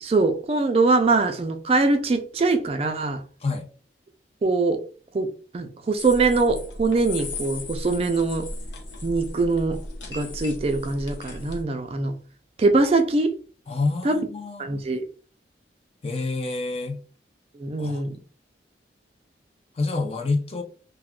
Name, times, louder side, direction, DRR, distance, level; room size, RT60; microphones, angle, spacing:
voice 1, 0.0-3.2 4.4-4.8 5.1-5.3 5.5-8.5 9.0-9.8 10.1-12.1 12.6-13.3 14.0-14.3 14.6-15.0 17.6-18.2, right 3 dB, 35° right, 0.3 m, -22 dB
sound 1, 6.0-11.6, left 2 dB, 90° left, 0.7 m, -36 dB
voice 2, 13.7-14.7 16.0-17.0 17.8-18.0 19.8-20.6, left 3 dB, 35° left, 0.5 m, -27 dB
2.3 x 2.3 x 3.5 m
head